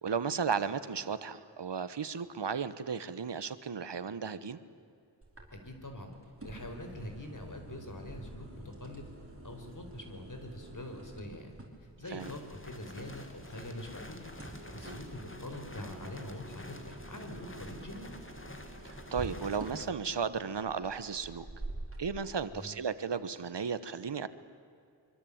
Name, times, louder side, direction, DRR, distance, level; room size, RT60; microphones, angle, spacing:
voice 1, 0.0-4.6 12.1-12.3 14.8-15.0 18.8-21.5 22.0-24.3, right 6 dB, 80° right, 13 dB, 1.3 m, -35 dB
sound 1, 5.2-22.1, right 2 dB, 30° right, 5.8 m, -48 dB
voice 2, 5.5-6.1 6.4-9.1 9.4-11.5 12.0-14.2 14.7-18.1 22.5-22.7, left 1 dB, 45° left, 4 dB, 5.2 m, -44 dB
sound 2, 12.2-19.9, left 1 dB, 30° left, 2.8 m, -49 dB
25.5 x 25.0 x 8.9 m, 2.4 s
wide cardioid pair, 65°, 42 cm